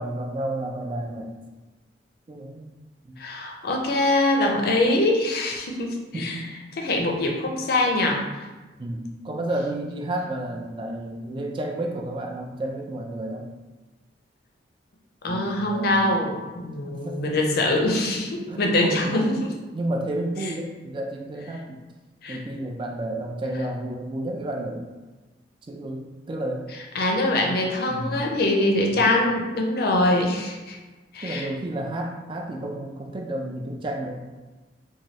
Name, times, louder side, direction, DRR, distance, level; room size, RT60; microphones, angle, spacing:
voice 1, 0.0-1.3 2.3-2.7 3.0-3.2 6.1-6.5 8.8-13.5 15.3-16.2 16.9-17.4 18.5-19.3 19.7-21.8 22.3-24.9 25.6-26.7 27.4-28.2 28.9-29.2 31.2-34.2, right 1 dB, 30° right, 2 dB, 0.3 m, -31 dB
voice 2, 3.2-6.3 6.8-8.2 15.2-19.5 22.2-22.4 26.9-30.8 31.1-31.5, left 1 dB, 60° left, 1 dB, 0.5 m, -23 dB
3.1 x 2.2 x 2.7 m, 1.2 s
head